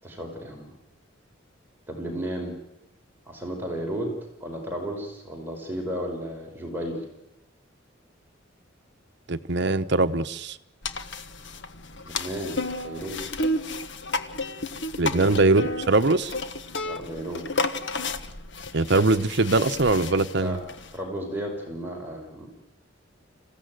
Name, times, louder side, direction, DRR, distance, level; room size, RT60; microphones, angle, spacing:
voice 1, 0.0-0.7 1.9-2.6 3.3-7.1 12.0-13.2 15.1-15.4 16.8-17.5 20.3-20.6 20.9-22.5, equal, 10° right, 0 dB, 5.5 m, -33 dB
voice 2, 9.3-10.6 15.0-16.3 18.7-20.6, right 3 dB, 60° right, 11 dB, 1.0 m, -22 dB
sound 1, 10.8-21.0, left 2 dB, 65° left, 1.4 m, -32 dB
27.0 x 16.0 x 9.3 m, 0.90 s
head